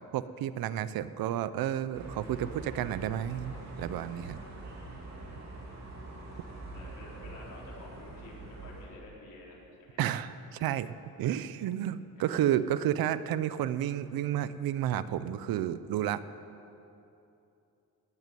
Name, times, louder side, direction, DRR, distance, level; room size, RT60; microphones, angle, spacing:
voice 1, 0.1-4.4 10.0-16.2, right 11 dB, 85° right, 14 dB, 0.7 m, -31 dB
sound 1, 1.9-8.9, right 2 dB, 50° right, 3.0 m, -44 dB
voice 2, 4.7-6.2 6.7-10.0 12.2-12.4, left 2 dB, 60° left, -5 dB, 4.8 m, -51 dB
17.0 x 8.2 x 9.2 m, 2.8 s
cardioid pair, 135°, 35 cm